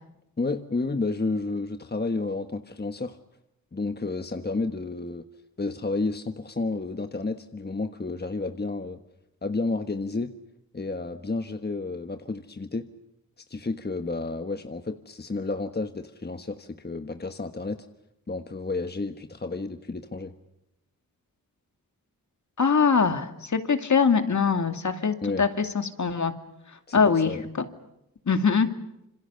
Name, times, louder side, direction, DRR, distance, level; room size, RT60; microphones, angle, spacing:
voice 1, 0.4-3.2 3.7-5.3 5.6-9.0 9.4-10.3 10.7-12.9 13.5-17.8 18.3-20.3 25.2-25.4 26.9-27.5, left 3 dB, 30° left, 8 dB, 1.4 m, -31 dB
voice 2, 22.6-26.3 26.9-27.3 27.6-27.7 28.3-28.7, left 5 dB, 55° left, 7 dB, 2.4 m, -23 dB
27.0 x 25.5 x 6.9 m, 0.85 s
cardioid pair, 65°, 36 cm